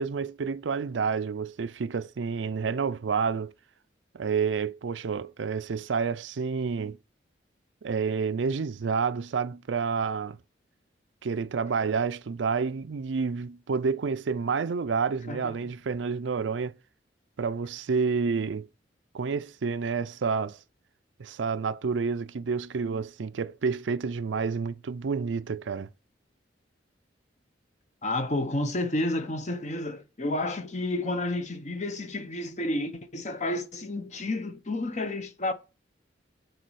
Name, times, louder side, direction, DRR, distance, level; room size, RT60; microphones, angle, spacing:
voice 1, 0.0-3.5 4.1-7.0 7.8-10.4 11.2-16.8 17.4-18.7 19.1-20.6 21.2-25.9, right 5 dB, 90° right, 0.5 m, -29 dB
voice 2, 15.3-15.7 28.0-35.5, left 2 dB, 40° left, 0.8 m, -31 dB
6.7 x 4.1 x 6.2 m
head